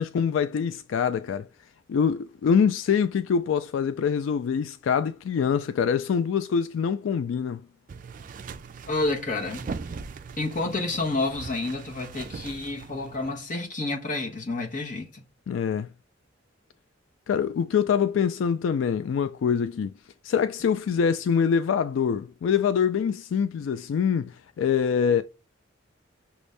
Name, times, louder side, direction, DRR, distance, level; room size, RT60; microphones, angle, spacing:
voice 1, 0.0-1.5 1.9-7.6 15.5-15.9 17.3-19.9 20.2-25.2, left 7 dB, 80° left, 0.3 m, -24 dB
sound 1, 7.9-13.3, right 5 dB, 45° right, 0.4 m, -40 dB
voice 2, 8.9-9.7 10.4-15.2, left 2 dB, 45° left, 1.1 m, -29 dB
6.1 x 2.6 x 3.2 m
head